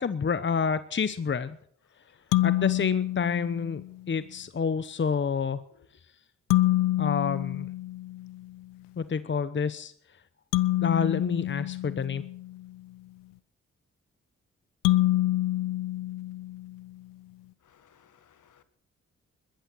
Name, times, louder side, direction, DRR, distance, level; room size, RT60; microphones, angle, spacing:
voice 1, 0.0-1.6 2.4-5.6 7.0-7.7 9.0-9.9 10.8-12.2, left 6 dB, 35° left, 14 dB, 1.0 m, -28 dB
sound 1, 2.3-4.0 6.5-8.5 10.5-12.7 14.8-16.9, left 16 dB, 80° left, 0.6 m, -27 dB
voice 2, 17.7-18.6, left 8 dB, 60° left, 12 dB, 1.8 m, -61 dB
21.5 x 13.0 x 4.7 m, 0.66 s
hypercardioid pair, 40°, 34 cm